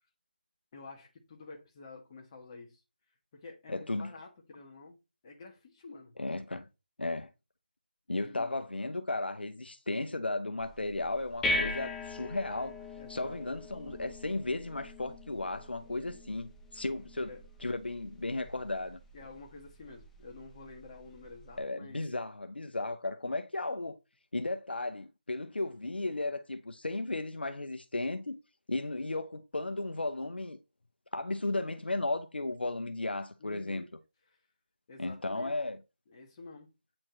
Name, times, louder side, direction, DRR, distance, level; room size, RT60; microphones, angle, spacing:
voice 1, 0.7-2.8 3.3-5.0 5.2-6.1 8.1-8.5 13.0-13.4 17.1-17.4 19.1-22.0 33.4-33.9 34.3-34.4 34.9-35.5 36.1-36.7, left 3 dB, 25° left, 1.6 m, -49 dB
voice 2, 3.7-4.1 6.2-6.7 7.0-7.3 8.1-12.8 13.1-17.3 17.6-19.0 21.6-23.9 24.3-28.4 28.7-30.6 31.1-33.9 35.0-35.8, left 2 dB, 85° left, 0.7 m, -35 dB
sound 1, 10.6-21.6, left 1 dB, 5° left, 0.7 m, -41 dB
8.7 x 4.4 x 3.1 m
figure-of-eight pair, 160°, 5 cm